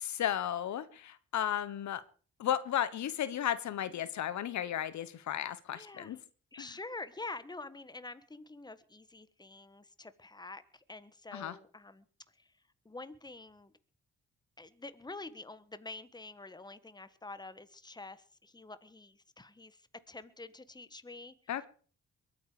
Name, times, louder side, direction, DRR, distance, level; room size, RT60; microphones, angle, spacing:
voice 1, 0.0-2.0 2.4-6.2 6.6-6.7 11.3-11.5 21.5-21.7, left 10 dB, 70° left, 15 dB, 1.2 m, -34 dB
voice 2, 5.7-6.2 6.5-12.0 12.4-12.5 12.8-13.7 14.6-21.3, left 3 dB, 15° left, 14 dB, 1.4 m, -47 dB
22.5 x 9.4 x 5.0 m, 0.41 s
cardioid pair, 80°, 29 cm